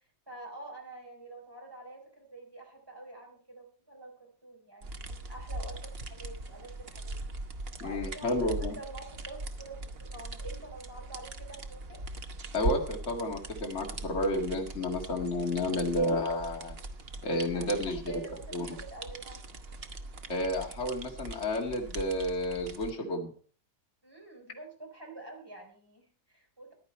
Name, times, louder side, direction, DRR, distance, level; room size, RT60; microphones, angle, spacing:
voice 1, 0.3-7.2 7.8-12.0 17.5-19.4 24.0-26.7, right 2 dB, 15° right, 1 dB, 4.2 m, -47 dB
sound 1, 4.8-22.9, right 2 dB, 40° right, 1.1 m, -41 dB
voice 2, 7.8-8.7 12.5-16.8 17.2-18.0 18.5-18.7 20.3-23.3, left 1 dB, 40° left, 0 dB, 2.4 m, -31 dB
15.0 x 10.5 x 4.3 m, 0.42 s
omnidirectional pair, 1.8 m